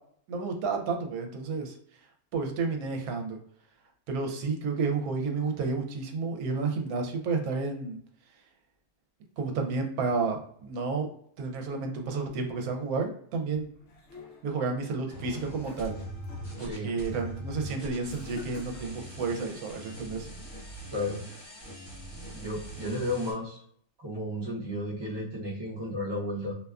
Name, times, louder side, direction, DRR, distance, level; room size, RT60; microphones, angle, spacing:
voice 1, 0.3-1.8 2.3-3.4 4.1-8.0 9.4-11.1 11.4-13.7 14.4-16.0 16.6-20.3, right 4 dB, 80° right, 4 dB, 1.0 m, -31 dB
sound 1, 13.5-14.7 15.2-16.5 16.9-17.2 18.1-19.5, left 2 dB, 60° left, 0.7 m, -49 dB
sound 2, 15.1-23.3, equal, 35° left, 1.1 m, -42 dB
voice 2, 16.6-16.9 20.9-21.2 22.3-23.6 24.0-26.6, left 1 dB, 35° right, -4 dB, 0.4 m, -33 dB
2.6 x 2.3 x 2.3 m, 0.64 s
omnidirectional pair, 1.5 m